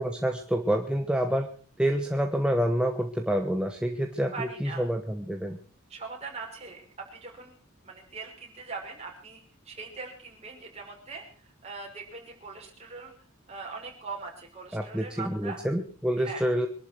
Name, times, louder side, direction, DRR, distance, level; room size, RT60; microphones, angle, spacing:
voice 1, 0.0-1.5 1.8-5.6 14.7-16.7, equal, 5° right, 4 dB, 1.1 m, -27 dB
voice 2, 4.3-4.9 5.9-6.8 7.1-7.5 7.8-13.1 13.5-15.6 16.2-16.4, right 4 dB, 30° right, 0 dB, 6.0 m, -41 dB
24.5 x 12.0 x 4.6 m, 0.43 s
head